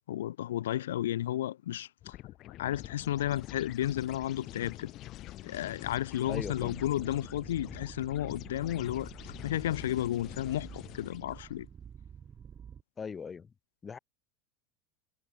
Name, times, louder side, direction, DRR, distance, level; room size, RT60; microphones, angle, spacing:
voice 1, 0.1-2.1 2.6-4.9 5.4-9.1 9.4-11.7, left 12 dB, 90° left, 0.7 m, -33 dB
sound 1, 2.0-11.5, left 15 dB, 50° left, 5.0 m, -46 dB
sound 2, 6.2-12.8, right 8 dB, 30° right, 1.8 m, -49 dB
voice 2, 6.3-6.8 13.0-13.5 13.8-14.0, left 6 dB, 25° left, 2.1 m, -39 dB
supercardioid pair, 110°, 0 cm